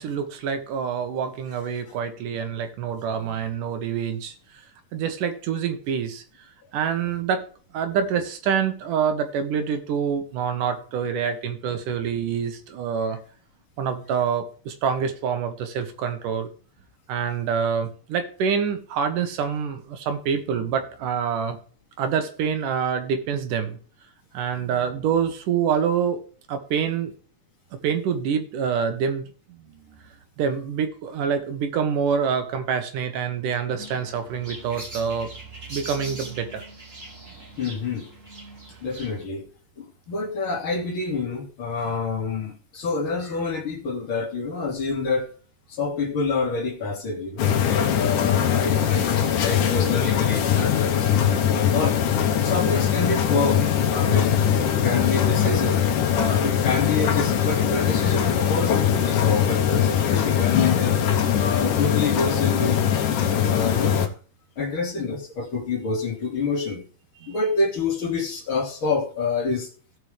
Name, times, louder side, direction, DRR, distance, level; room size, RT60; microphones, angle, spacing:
voice 1, 0.0-4.3 4.9-6.2 6.7-7.4 7.7-13.2 13.8-16.5 17.1-21.6 22.0-23.8 24.3-26.2 26.5-27.1 27.8-29.2 29.7-29.8 30.4-35.3 35.7-36.6 67.2-67.3, right 7 dB, 75° right, 7 dB, 2.8 m, -26 dB
sound 1, 33.8-39.3, right 2 dB, 25° right, 2.9 m, -41 dB
voice 2, 37.6-38.1 38.8-39.5 39.8-45.3 45.7-52.0 52.4-55.8 56.1-61.0 61.4-62.8 63.4-64.1 64.6-66.8 67.3-69.7, left 4 dB, 40° left, 0 dB, 2.9 m, -27 dB
sound 2, 47.4-64.1, left 9 dB, 75° left, 2.5 m, -21 dB
17.0 x 5.9 x 3.4 m, 0.41 s
omnidirectional pair, 3.8 m